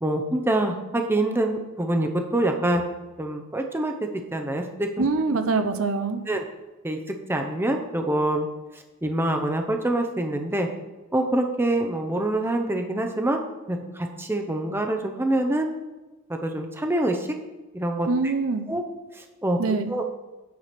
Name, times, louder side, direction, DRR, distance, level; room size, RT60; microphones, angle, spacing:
voice 1, 0.0-2.8 3.2-3.9 4.3-5.1 6.3-6.4 6.8-7.0 7.3-8.5 9.0-10.7 11.1-13.4 13.7-15.7 16.3-17.2 17.7-18.1 18.7-18.8 19.4-19.6 19.9-20.0, right 1 dB, 10° right, 4 dB, 0.7 m, -25 dB
voice 2, 5.0-6.2 18.1-18.7 19.6-20.0, right 3 dB, 70° right, 9 dB, 0.7 m, -24 dB
9.2 x 4.8 x 5.9 m, 1.1 s
head